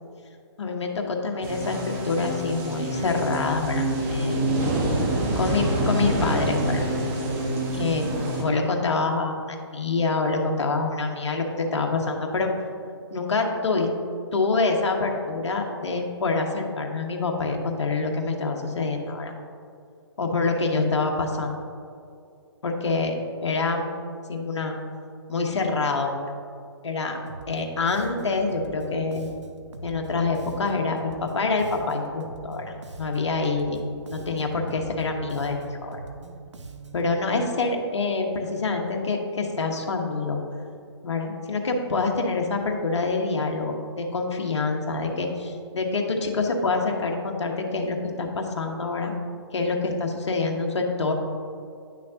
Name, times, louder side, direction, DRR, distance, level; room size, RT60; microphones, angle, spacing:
voice 1, 0.6-4.4 5.3-6.9 7.7-12.5 13.1-13.9 14.3-19.3 20.2-21.5 22.6-23.2 23.4-23.8 24.3-24.8 25.3-26.3 26.8-27.2 27.5-29.3 29.8-33.8 34.1-36.0 36.9-40.4 41.0-49.1 49.5-51.1, left 3 dB, 75° left, 2 dB, 1.1 m, -26 dB
sound 1, 1.4-8.4, right 1 dB, 30° right, 1.2 m, -26 dB
Bass guitar, 27.3-37.1, right 3 dB, 85° right, 0.8 m, -42 dB
10.0 x 6.3 x 2.8 m, 2.4 s
hypercardioid pair, 145°, 15 cm